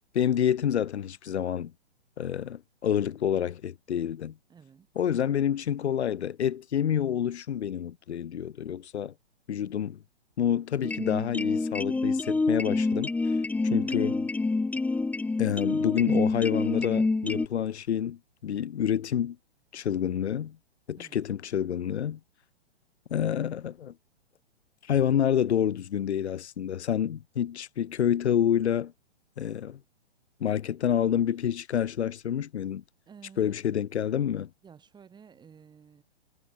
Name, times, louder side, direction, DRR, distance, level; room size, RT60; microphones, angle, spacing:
voice 1, 0.1-1.7 2.2-4.4 5.0-9.1 9.5-10.0 10.4-13.1 13.6-14.3 15.4-19.4 19.7-20.6 20.9-22.2 23.1-23.9 24.9-28.9 29.4-29.8 30.4-32.8 33.4-34.5, left 9 dB, 75° left, 1.1 m, -28 dB
voice 2, 4.5-4.9 13.7-13.9 21.0-21.2 33.1-33.6 34.6-36.0, right 6 dB, 15° right, 7.2 m, -52 dB
sound 1, 10.8-17.5, left 3 dB, 5° left, 1.1 m, -27 dB
hypercardioid pair, 135°, 34 cm